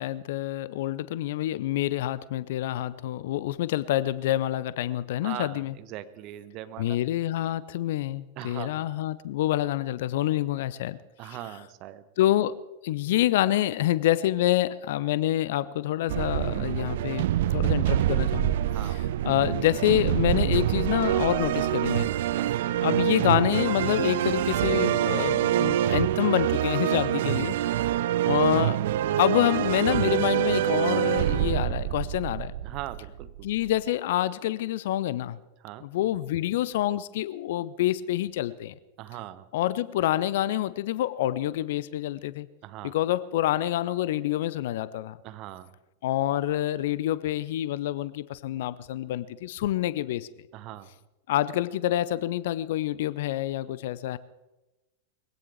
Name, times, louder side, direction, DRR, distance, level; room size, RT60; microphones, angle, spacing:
voice 1, 0.0-5.8 6.8-11.0 11.3-11.4 12.2-12.5 12.8-17.3 17.5-18.6 18.8-22.1 22.8-27.6 28.2-28.8 29.2-32.5 33.4-35.4 35.8-38.7 39.5-42.5 42.8-45.2 46.0-50.3 51.3-54.2, left 13 dB, 55° left, 19 dB, 0.6 m, -27 dB
voice 2, 5.2-7.0 8.4-8.8 11.2-12.0 18.7-19.0 22.4-22.6 27.6-28.1 32.6-33.5 35.6-35.8 39.0-39.5 42.6-43.0 45.2-45.7 50.5-50.9, right 14 dB, 40° right, 13 dB, 0.9 m, -40 dB
sound 1, 16.1-33.7, right 12 dB, 55° right, 0.4 m, -26 dB
21.5 x 16.5 x 3.4 m, 1.1 s
figure-of-eight pair, 90°, 0 cm